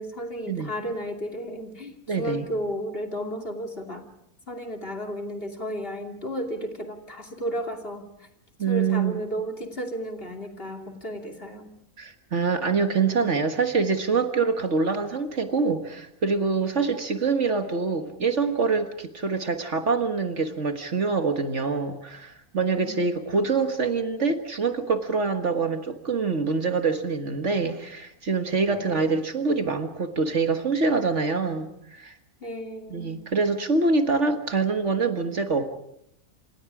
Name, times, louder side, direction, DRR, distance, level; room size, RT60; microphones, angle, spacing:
voice 1, 0.0-4.1 4.5-8.3 8.7-11.7 22.8-23.0 28.7-29.1 32.4-33.2, equal, 40° left, 3 dB, 3.0 m, -33 dB
voice 2, 2.1-2.5 8.6-9.2 12.0-32.2 32.9-35.7, right 4 dB, 55° right, 7 dB, 1.8 m, -25 dB
28.0 x 27.0 x 4.9 m, 0.75 s
omnidirectional pair, 1.5 m